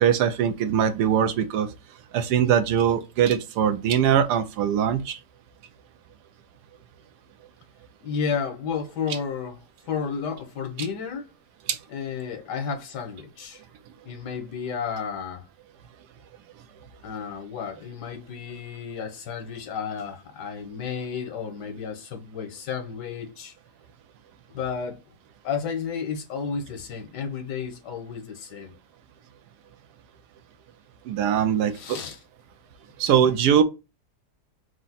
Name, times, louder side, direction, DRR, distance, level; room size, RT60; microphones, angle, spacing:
voice 1, 0.0-1.7 2.1-5.2 11.7-11.8 31.0-31.8 33.0-33.6, right 9 dB, 80° right, 1.2 m, -21 dB
voice 2, 8.0-9.6 9.9-11.3 11.9-13.6 14.0-15.4 17.0-23.5 24.5-25.0 25.4-28.7 31.7-32.2, left 6 dB, 90° left, 1.6 m, -32 dB
4.8 x 2.1 x 4.1 m
omnidirectional pair, 1.7 m